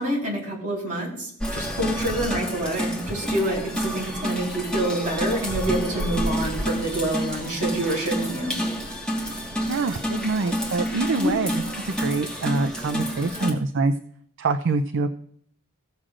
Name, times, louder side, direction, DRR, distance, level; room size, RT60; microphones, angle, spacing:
voice 1, 0.0-8.6 11.2-11.4, right 1 dB, 35° right, -3 dB, 4.0 m, -27 dB
sound 1, 1.4-13.5, equal, 5° left, 1.6 m, -29 dB
voice 2, 9.7-11.5 11.9-13.9 14.4-15.1, right 3 dB, 55° right, 8 dB, 0.5 m, -25 dB
16.0 x 7.4 x 2.5 m, 0.63 s
head